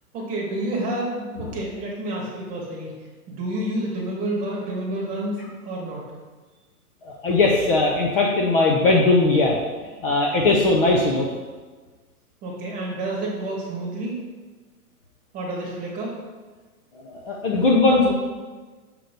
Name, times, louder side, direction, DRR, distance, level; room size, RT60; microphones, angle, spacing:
voice 1, 0.1-3.0 3.3-5.4 5.6-6.1 12.4-14.2 15.3-16.1, right 1 dB, 15° right, -4 dB, 1.2 m, -29 dB
voice 2, 7.1-9.6 10.0-11.3 17.1-18.1, left 2 dB, 35° left, -1 dB, 0.6 m, -19 dB
6.6 x 2.9 x 5.1 m, 1.4 s
hypercardioid pair, 150°, 47 cm